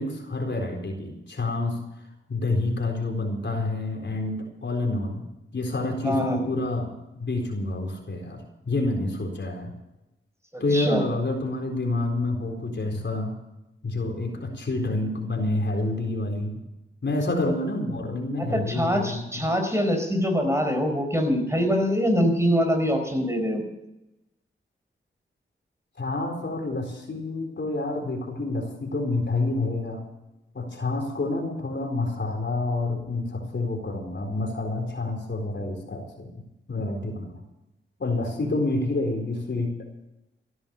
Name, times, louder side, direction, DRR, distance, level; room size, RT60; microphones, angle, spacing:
voice 1, 0.0-1.8 2.3-5.2 5.5-9.7 10.6-13.4 13.8-16.6 17.0-19.5 26.0-30.0 30.5-36.4 36.7-37.4 38.0-39.7, left 2 dB, 60° left, 2 dB, 4.2 m, -28 dB
voice 2, 6.0-6.4 10.5-11.0 18.4-23.6, equal, 15° right, 5 dB, 4.7 m, -24 dB
15.0 x 11.0 x 7.2 m, 0.93 s
cardioid pair, 45°, 21 cm